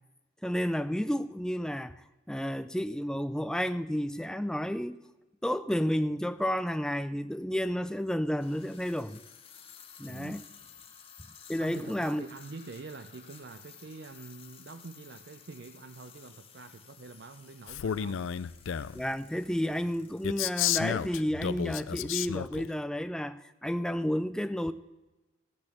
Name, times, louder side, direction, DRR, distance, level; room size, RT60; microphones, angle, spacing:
voice 1, 0.4-2.0 2.3-5.0 5.4-9.2 10.0-10.4 11.5-12.2 18.9-24.7, equal, 5° left, 0.3 m, -31 dB
sound 1, 5.0-5.1 6.1-6.2 8.2-22.4, left 8 dB, 30° left, 1.1 m, -55 dB
voice 2, 10.0-10.5 11.6-18.3, right 3 dB, 55° right, 0.5 m, -46 dB
Male speech man speaking, 17.7-19.0 20.2-22.7, left 9 dB, 80° left, 0.4 m, -32 dB
15.0 x 6.3 x 7.3 m
head